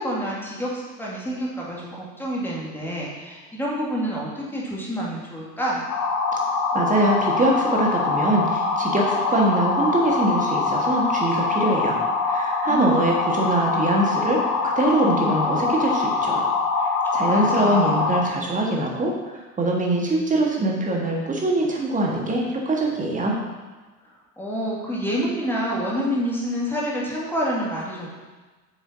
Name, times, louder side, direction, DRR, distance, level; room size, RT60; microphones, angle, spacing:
voice 1, 0.0-5.8 12.7-13.3 17.3-18.2 24.4-28.1, equal, 5° left, -6 dB, 2.2 m, -28 dB
sound 1, 5.9-18.2, left 4 dB, 40° left, 1.4 m, -24 dB
voice 2, 6.7-16.4 17.1-19.1 19.6-23.4, right 1 dB, 15° right, -1 dB, 1.6 m, -23 dB
8.5 x 6.7 x 2.8 m, 1.3 s
figure-of-eight pair, 70°, 46 cm